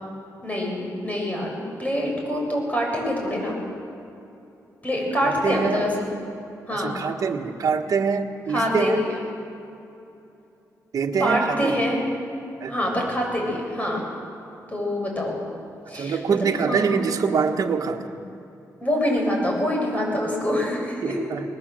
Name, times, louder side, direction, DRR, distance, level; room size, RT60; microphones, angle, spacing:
voice 1, 0.4-3.6 4.8-6.1 6.7-7.0 8.5-9.2 11.1-12.0 12.7-14.0 14.7-15.4 15.9-17.0 18.8-21.2, equal, 25° left, 0 dB, 7.1 m, -25 dB
voice 2, 5.2-5.8 6.7-9.1 10.9-11.8 12.6-13.1 15.9-18.1 21.0-21.6, right 5 dB, 65° right, 2 dB, 1.5 m, -25 dB
21.5 x 19.5 x 7.7 m, 2.8 s
cardioid pair, 90°, 6 cm